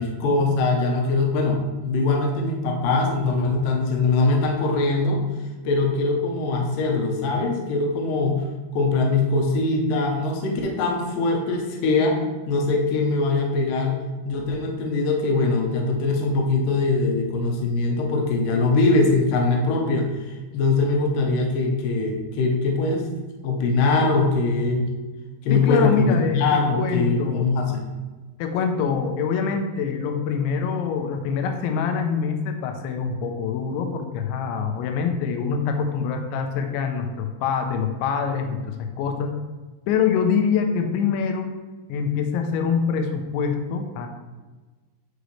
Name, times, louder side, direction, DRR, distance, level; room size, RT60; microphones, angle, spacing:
voice 1, 0.0-5.2 5.6-8.4 8.7-12.2 12.5-14.0 14.3-23.1 23.4-24.9 25.4-27.8, left 3 dB, 70° left, 0 dB, 2.1 m, -22 dB
voice 2, 25.5-27.5 28.4-39.3 39.9-41.5 41.9-44.1, left 6 dB, 85° left, 5 dB, 3.0 m, -25 dB
11.5 x 4.0 x 3.2 m, 1.3 s
omnidirectional pair, 5.2 m